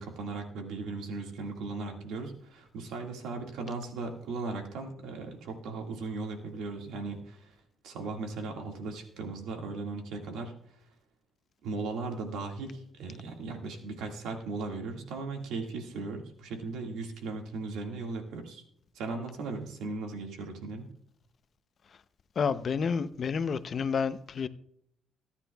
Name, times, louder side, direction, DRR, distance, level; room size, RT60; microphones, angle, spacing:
voice 1, 0.0-7.6 7.8-10.5 11.6-18.6 18.9-20.9, right 3 dB, 85° right, 1.9 m, -37 dB
voice 2, 22.4-24.5, left 6 dB, 50° left, 0.6 m, -29 dB
24.5 x 9.8 x 2.3 m
cardioid pair, 90°, 0 cm